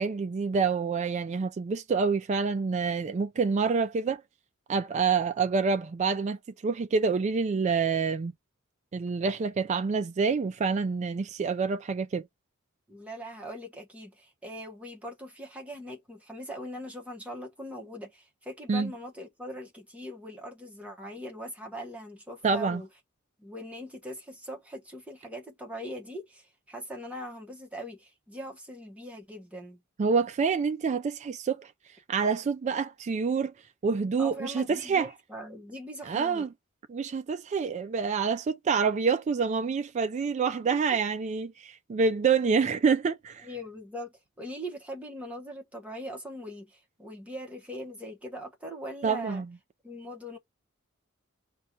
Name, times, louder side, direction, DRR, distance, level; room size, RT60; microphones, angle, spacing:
voice 1, 0.0-4.2 4.7-8.3 8.9-12.2 18.7-18.9 22.4-22.8 30.0-31.7 32.1-33.5 33.8-35.1 36.1-36.5 36.9-43.5 49.0-49.5, right 5 dB, 35° right, 0.3 m, -27 dB
voice 2, 12.9-22.9 23.4-29.8 34.2-36.5 40.5-41.0 43.4-49.4 49.8-50.4, equal, 5° right, 1.1 m, -41 dB
5.3 x 2.3 x 4.3 m
head